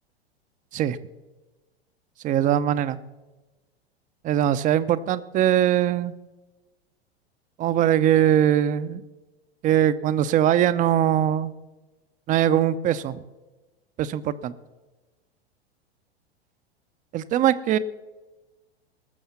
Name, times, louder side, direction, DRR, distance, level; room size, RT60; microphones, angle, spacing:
voice 1, 2.2-3.0 4.2-6.1 7.6-9.0 9.6-11.5 12.3-13.2 14.0-14.5 17.1-17.8, right 11 dB, 25° right, 14 dB, 0.6 m, -21 dB
19.5 x 7.1 x 5.7 m, 1.2 s
figure-of-eight pair, 95°, 32 cm